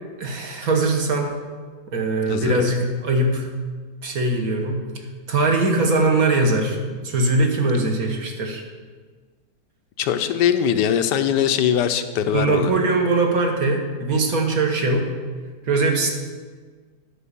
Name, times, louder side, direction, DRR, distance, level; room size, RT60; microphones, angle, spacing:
voice 1, 0.2-1.4 1.9-3.5 4.0-4.8 5.3-6.8 7.0-8.6 12.3-15.1 15.7-16.1, right 2 dB, 60° right, 2 dB, 1.5 m, -21 dB
voice 2, 2.3-2.7 10.0-12.7, left 9 dB, 80° left, 9 dB, 1.2 m, -21 dB
10.0 x 4.8 x 6.8 m, 1.5 s
omnidirectional pair, 1.8 m